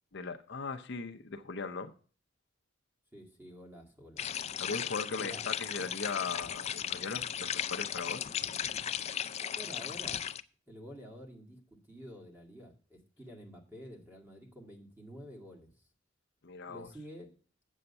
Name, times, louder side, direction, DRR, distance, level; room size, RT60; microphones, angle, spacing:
voice 1, 0.1-1.9 4.6-8.2 8.8-9.0 16.4-16.9, left 4 dB, 60° left, 6 dB, 0.7 m, -39 dB
voice 2, 3.1-4.2 5.2-5.5 5.8-5.9 9.5-10.3 10.7-15.7 16.7-17.3, equal, 10° right, 2 dB, 2.0 m, -49 dB
sound 1, 4.2-10.4, left 9 dB, 35° left, 0.3 m, -36 dB
7.9 x 7.4 x 5.4 m, 0.40 s
head